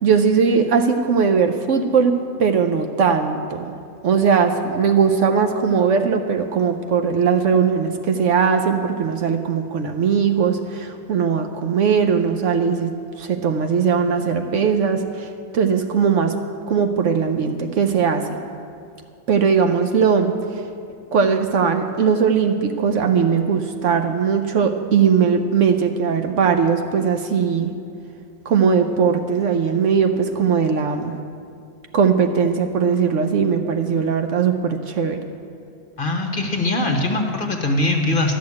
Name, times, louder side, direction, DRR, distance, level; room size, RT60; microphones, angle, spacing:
voice 1, 0.0-3.7 4.0-12.9 13.2-16.3 16.7-18.4 19.3-20.6 21.1-27.7 28.5-31.1 31.9-35.2, right 6 dB, 65° right, 6 dB, 0.9 m, -19 dB
voice 2, 36.0-38.4, left 2 dB, 40° left, 3 dB, 1.1 m, -21 dB
12.5 x 6.4 x 9.5 m, 2.4 s
omnidirectional pair, 1.5 m